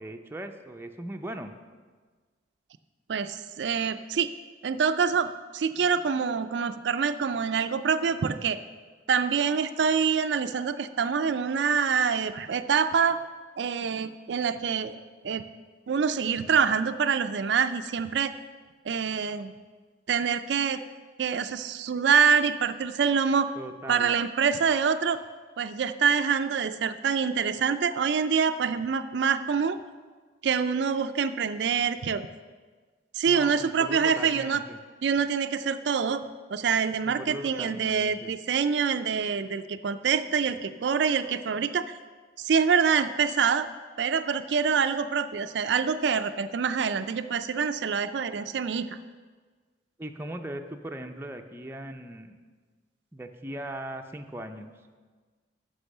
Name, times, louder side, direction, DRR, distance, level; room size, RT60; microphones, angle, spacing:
voice 1, 0.0-1.5 23.6-24.1 33.3-34.8 37.1-38.3 50.0-52.4 53.1-54.7, right 1 dB, 15° right, 4 dB, 0.5 m, -39 dB
voice 2, 3.1-4.3 4.6-8.6 9.1-13.2 13.6-15.0 15.2-15.4 15.9-18.3 18.9-19.5 20.1-20.8 21.2-23.5 23.9-25.2 25.6-29.8 30.4-32.3 33.1-34.6 35.0-36.2 36.5-41.9 42.4-43.7 44.0-49.0, right 6 dB, 70° right, 10 dB, 0.4 m, -26 dB
9.8 x 6.2 x 6.6 m, 1.5 s
head